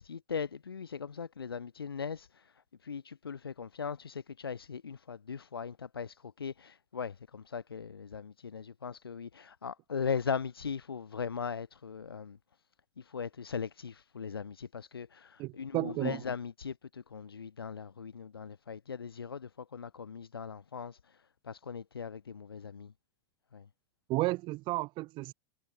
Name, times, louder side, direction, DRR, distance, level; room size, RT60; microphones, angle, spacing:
voice 1, 0.0-12.4 13.0-22.9 23.5-23.7, left 6 dB, 85° left, 0.4 m, -39 dB
voice 2, 15.4-16.2 24.1-25.3, right 20 dB, 40° right, 0.8 m, -32 dB
figure-of-eight pair, 90°, 12 cm